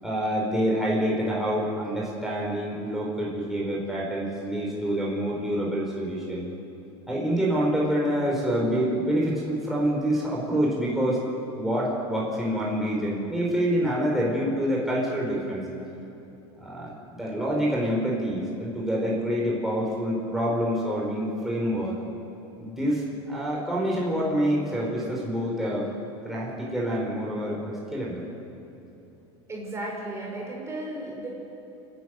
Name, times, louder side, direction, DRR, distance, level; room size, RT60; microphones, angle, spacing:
voice 1, 0.0-6.5 7.1-11.2 11.6-15.6 16.6-22.0 22.6-25.9 26.2-28.2, equal, ahead, -5 dB, 5.3 m, -27 dB
voice 2, 29.5-31.3, right 1 dB, 20° right, -2 dB, 5.3 m, -34 dB
28.0 x 10.5 x 9.4 m, 2.9 s
supercardioid pair, 115°, 13 cm